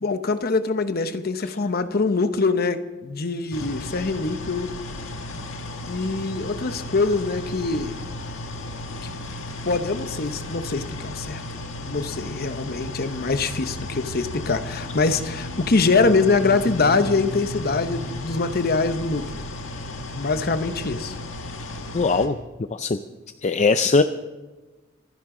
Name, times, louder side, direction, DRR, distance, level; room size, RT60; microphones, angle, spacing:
voice 1, 0.0-4.7 5.9-8.0 9.0-9.1 9.6-11.4 11.8-19.4 20.1-21.1, left 3 dB, 55° left, 10 dB, 0.9 m, -24 dB
sound 1, 3.5-22.3, left 2 dB, 80° left, 1.7 m, -34 dB
voice 2, 21.9-22.4 22.7-23.0 23.4-24.0, left 4 dB, 35° left, 10 dB, 0.5 m, -20 dB
25.0 x 11.0 x 3.8 m, 1.2 s
head